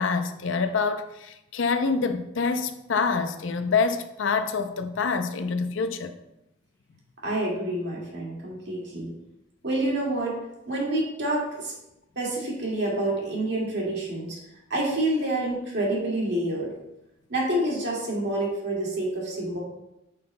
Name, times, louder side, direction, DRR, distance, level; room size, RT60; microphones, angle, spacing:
voice 1, 0.0-6.1, left 4 dB, 90° left, 0.5 m, -26 dB
voice 2, 7.2-9.1 9.6-10.4 10.7-11.7 12.2-14.4 14.7-16.7 17.3-19.6, right 1 dB, 65° right, 2.1 m, -27 dB
8.6 x 5.7 x 2.2 m
head